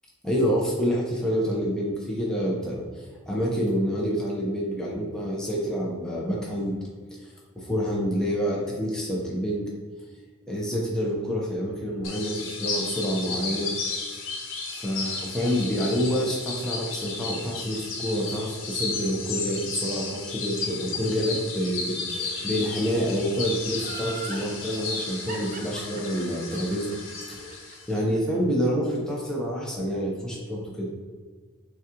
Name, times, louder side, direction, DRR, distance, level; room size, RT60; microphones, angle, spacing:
voice 1, 0.2-2.8 3.3-6.7 7.5-9.7 10.5-13.7 14.8-27.0 27.3-27.6 27.9-30.9, equal, 5° left, -4 dB, 0.8 m, -27 dB
sound 1, 12.0-28.0, left 4 dB, 90° left, 0.7 m, -34 dB
Laughter, 23.8-24.5 25.3-28.4 28.7-28.8, right 5 dB, 40° right, 0.5 m, -40 dB
6.2 x 2.4 x 2.9 m, 1.5 s
head